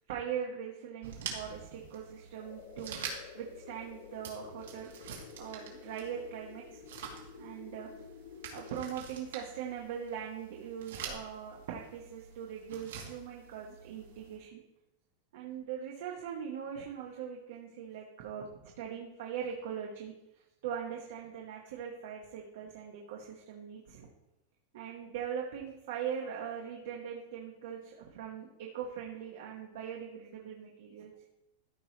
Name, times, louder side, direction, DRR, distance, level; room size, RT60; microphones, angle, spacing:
voice 1, 0.1-5.1 5.4-6.9 7.3-8.0 8.5-14.6 15.3-24.1 24.7-31.1, right 8 dB, 55° right, 0 dB, 1.0 m, -41 dB
sound 1, 1.0-14.4, right 6 dB, 85° right, 2.0 m, -47 dB
sound 2, 2.4-8.8, left 7 dB, 55° left, 0.7 m, -51 dB
13.5 x 5.3 x 3.2 m, 0.91 s
supercardioid pair, 180°, 0 cm